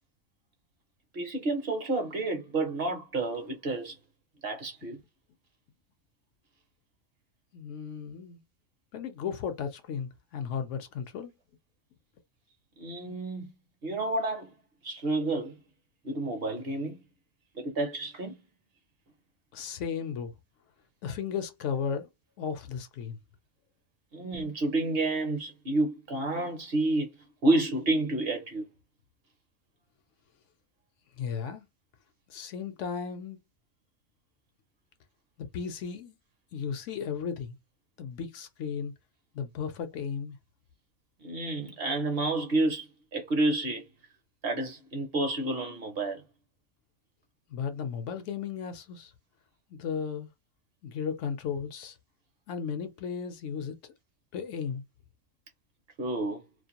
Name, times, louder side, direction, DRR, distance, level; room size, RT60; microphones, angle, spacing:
voice 1, 1.1-4.0 4.4-5.0 12.8-13.5 13.8-14.5 14.8-15.5 16.0-17.0 17.5-18.4 24.1-27.1 27.4-28.6 41.2-43.8 44.4-46.2 56.0-56.4, right 2 dB, 55° right, 0.8 m, -29 dB
voice 2, 7.5-8.4 8.9-11.3 19.5-20.3 21.0-22.1 22.4-23.2 31.2-31.7 32.3-33.4 35.4-36.2 36.5-37.6 38.0-38.9 39.3-40.4 47.5-49.1 49.7-50.3 50.8-52.0 52.5-53.8 54.3-54.8, left 6 dB, 70° left, 0.9 m, -35 dB
2.5 x 2.1 x 2.8 m
omnidirectional pair, 1.4 m